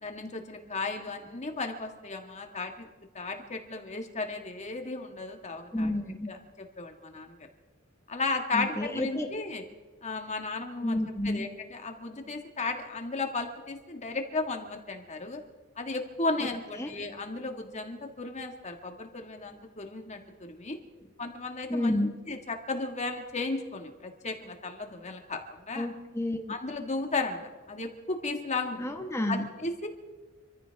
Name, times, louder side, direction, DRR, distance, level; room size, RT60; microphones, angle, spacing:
voice 1, 0.0-2.9 3.1-5.9 6.3-7.4 8.1-9.6 10.0-11.0 11.2-15.4 15.8-20.8 21.2-21.9 22.3-25.9 26.5-27.4 27.7-28.8 29.3-29.9, left 3 dB, 35° left, 4 dB, 1.8 m, -34 dB
voice 2, 5.7-6.3 8.5-9.3 10.8-11.5 16.8-16.9 21.7-22.1 25.7-26.4 28.8-29.5, left 1 dB, 15° left, 4 dB, 1.4 m, -30 dB
26.5 x 15.0 x 3.5 m, 1.3 s
head